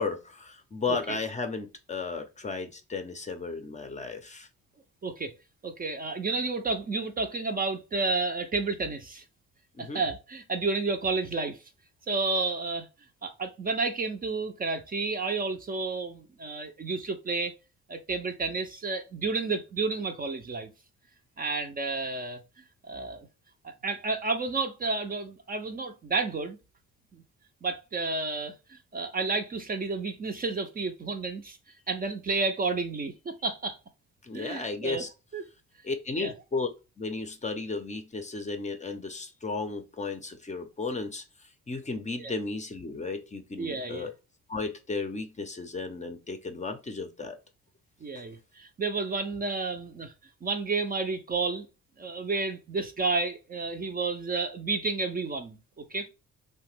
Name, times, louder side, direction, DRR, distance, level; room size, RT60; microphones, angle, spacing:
voice 1, 0.0-4.5 9.8-10.0 34.2-35.1 35.8-36.7 37.0-41.2 41.7-44.1 44.5-47.4 48.1-48.3, left 4 dB, 25° left, 0.5 m, -34 dB
voice 2, 5.0-5.3 5.6-9.2 9.8-11.6 12.1-12.9 13.2-17.5 17.9-20.7 21.4-22.4 22.9-23.3 23.6-26.6 27.1-27.2 27.6-31.6 31.9-33.8 34.3-35.0 35.3-35.4 36.2-36.3 42.2-42.3 43.6-44.1 48.0-50.1 50.4-51.7 52.0-55.6 55.9-56.1, right 3 dB, 30° right, 0.5 m, -31 dB
2.8 x 2.1 x 3.1 m
cardioid pair, 90°, 30 cm